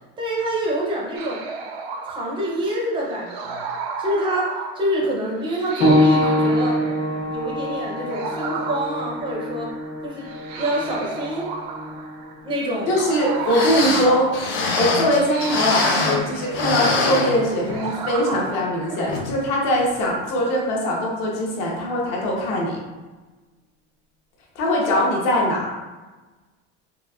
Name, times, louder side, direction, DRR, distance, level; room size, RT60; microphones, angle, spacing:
voice 1, 0.2-1.4 2.0-3.6 4.0-6.8 7.3-9.7 10.0-10.3 10.5-11.5 12.4-13.0 13.7-14.2 14.5-14.7, right 1 dB, 15° right, -3 dB, 0.5 m, -26 dB
sound 1, 1.1-19.2, right 4 dB, 65° right, 0.5 m, -34 dB
sound 2, 5.8-16.0 17.0-17.1 17.8-17.9, left 1 dB, 75° left, 1.3 m, -26 dB
voice 2, 12.9-14.3 14.7-22.8 24.5-25.7, equal, 55° left, -2 dB, 0.9 m, -21 dB
sound 3, 13.2-13.3 13.4-16.3 16.5-17.9 18.3-18.4 19.1-19.3 19.8-19.9, left 3 dB, 40° left, 0.4 m, -24 dB
4.2 x 2.4 x 2.3 m, 1.2 s
cardioid pair, 170°, 32 cm